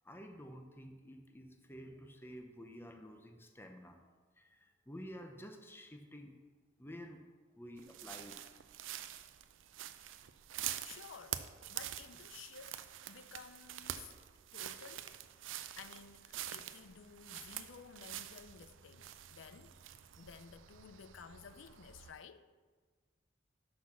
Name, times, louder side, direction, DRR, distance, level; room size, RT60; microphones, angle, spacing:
voice 1, 0.0-6.3 6.8-7.2 7.5-8.4, equal, 10° left, 0.7 m, -51 dB
sound 1, 7.8-22.1, right 11 dB, 90° right, 0.4 m, -46 dB
voice 2, 10.8-14.1 14.5-15.2 15.8-19.8 20.2-22.5, left 6 dB, 85° left, 0.5 m, -54 dB
6.1 x 6.0 x 6.0 m
head